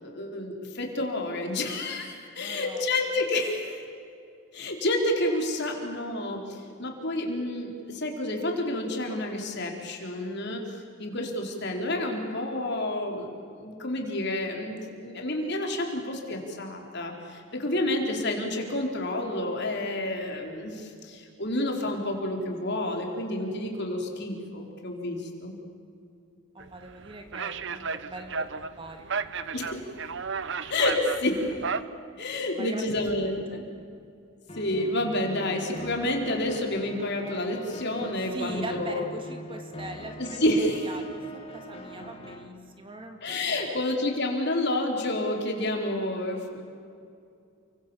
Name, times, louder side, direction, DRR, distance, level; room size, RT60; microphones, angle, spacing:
voice 1, 0.0-3.8 4.5-10.6 11.0-25.5 29.5-29.8 30.7-31.5 32.2-33.6 34.5-39.0 40.2-40.9 43.2-46.6, left 1 dB, 50° left, 2 dB, 4.3 m, -29 dB
voice 2, 2.4-2.9 3.4-3.5 26.5-29.1 32.5-32.8 33.1-33.6 38.3-43.8, right 1 dB, 25° right, 5 dB, 2.4 m, -42 dB
sound 1, 26.6-31.8, right 5 dB, 60° right, 1.0 m, -33 dB
sound 2, 34.5-42.5, equal, 25° left, 2.4 m, -42 dB
30.0 x 24.5 x 7.3 m, 2.4 s
head